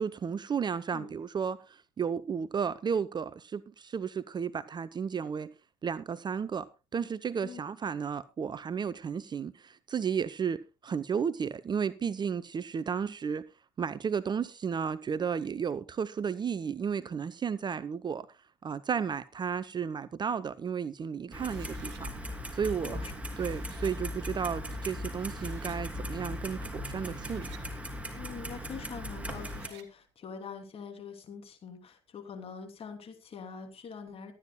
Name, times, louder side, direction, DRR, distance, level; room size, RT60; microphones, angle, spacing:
voice 1, 0.0-5.5 5.8-13.4 13.8-18.3 18.6-22.1 22.5-23.1 23.4-27.5, right 6 dB, 30° right, 0.6 m, -33 dB
Clock, 21.3-29.7, left 1 dB, 10° right, 2.9 m, -38 dB
sound 1, 21.4-22.0 23.0-24.0 24.8-24.9 25.1-25.8 26.9-27.7 29.1-29.9, right 8 dB, 70° right, 1.7 m, -55 dB
voice 2, 22.7-23.1 28.1-34.3, left 6 dB, 40° left, 2.9 m, -44 dB
22.5 x 10.0 x 2.2 m
figure-of-eight pair, 55°, 15 cm